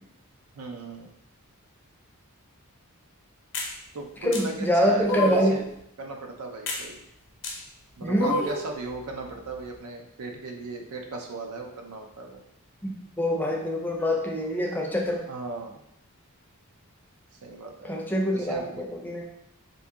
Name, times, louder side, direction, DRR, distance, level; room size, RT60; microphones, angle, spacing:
voice 1, 0.6-1.1 3.9-5.7 6.0-7.0 8.0-12.4 15.3-15.8 17.4-18.0 18.3-18.9, right 3 dB, 90° right, 3 dB, 0.5 m, -37 dB
sound 1, 3.5-3.7 4.3-4.4 5.0-5.6 6.7-6.8 7.4-7.6 8.1-8.7, left 1 dB, 55° left, 0.7 m, -29 dB
voice 2, 4.2-5.6 8.0-8.4 12.8-12.9 13.2-15.2 17.8-19.2, equal, 10° left, 0 dB, 0.5 m, -25 dB
2.7 x 2.6 x 3.5 m, 0.75 s
head